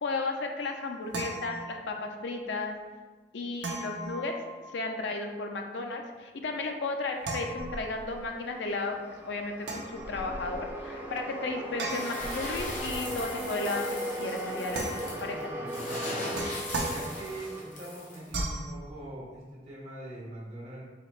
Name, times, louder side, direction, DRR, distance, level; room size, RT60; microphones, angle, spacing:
voice 1, 0.0-2.8 3.3-4.3 4.7-13.8 14.2-14.9 15.2-15.5, left 3 dB, 80° left, 3 dB, 0.5 m, -34 dB
sound 1, 0.6-2.2 3.6-5.0 7.2-8.3 9.6-10.7 11.8-13.2 14.7-15.4 15.9-17.5 18.3-18.7, right 2 dB, 75° right, 0.6 m, -37 dB
sound 2, 8.2-18.5, right 1 dB, 10° right, 0.4 m, -38 dB
sound 3, 11.9-18.3, left 2 dB, 45° left, 0.9 m, -40 dB
voice 2, 15.1-16.3 16.8-20.8, right 1 dB, 35° right, -7 dB, 1.3 m, -43 dB
4.1 x 2.9 x 3.1 m, 1.4 s
head